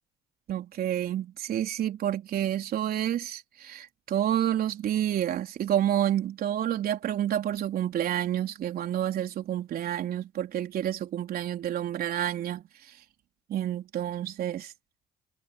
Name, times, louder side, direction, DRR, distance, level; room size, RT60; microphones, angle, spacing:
voice 1, 0.5-12.6 13.5-14.7, right 11 dB, 60° right, 4.2 m, -29 dB
hypercardioid pair, 60°, 18 cm